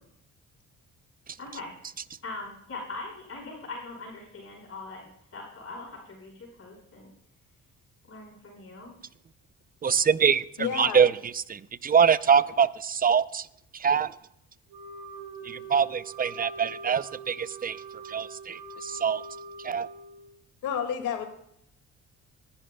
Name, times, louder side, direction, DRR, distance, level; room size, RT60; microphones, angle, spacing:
voice 1, 1.4-1.8 2.2-7.1 8.1-8.9, left 3 dB, 50° left, -1 dB, 5.2 m, -41 dB
voice 2, 9.8-13.5 13.7-14.2 15.4-19.2 19.6-19.9, right 7 dB, 30° right, 16 dB, 0.6 m, -24 dB
voice 3, 10.6-11.0 20.6-21.2, left 8 dB, 85° left, 5 dB, 2.2 m, -30 dB
Wind instrument woodwind instrument, 14.7-20.3, right 3 dB, 85° right, 2.1 m, -43 dB
21.0 x 11.0 x 2.3 m, 0.72 s
cardioid pair, 90°, 30 cm